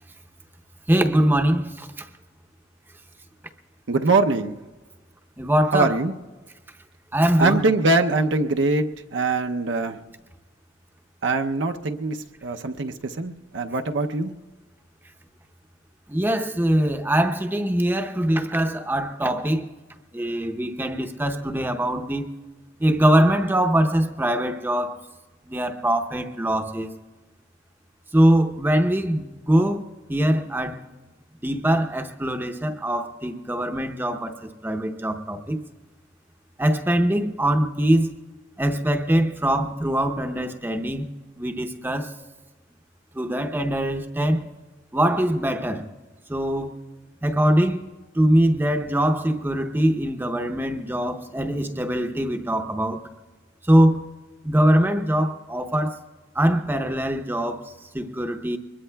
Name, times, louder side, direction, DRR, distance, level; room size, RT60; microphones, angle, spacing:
voice 1, 0.9-2.1 5.4-6.0 7.1-7.6 16.1-19.7 20.1-22.3 22.8-25.0 25.5-27.0 28.1-30.9 31.4-35.6 36.6-38.1 38.6-41.1 41.4-42.1 43.1-44.5 44.9-45.9 46.3-46.7 47.2-47.8 48.1-53.0 53.6-54.1 54.4-56.0 56.3-58.6, right 1 dB, 10° right, 0.7 m, -22 dB
voice 2, 3.9-4.6 5.7-6.1 7.4-8.9 9.1-10.0 11.2-14.3, right 3 dB, 65° right, 0.6 m, -22 dB
23.5 x 21.5 x 2.3 m
head